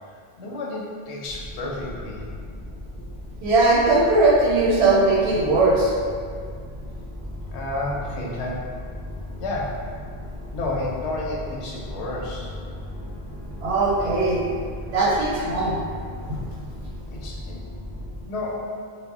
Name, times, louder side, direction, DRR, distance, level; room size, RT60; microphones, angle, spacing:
voice 1, 0.4-2.3 7.5-8.7 9.3-9.8 10.5-12.5 17.1-17.6 18.3-18.7, left 2 dB, 85° left, -3 dB, 0.9 m, -31 dB
sound 1, 1.2-18.2, left 1 dB, 35° left, 0.4 m, -36 dB
voice 2, 3.4-5.9 13.6-14.4 14.9-15.8 16.3-16.4, right 2 dB, 85° right, -5 dB, 0.9 m, -19 dB
2.1 x 2.0 x 3.5 m, 2.1 s
omnidirectional pair, 1.1 m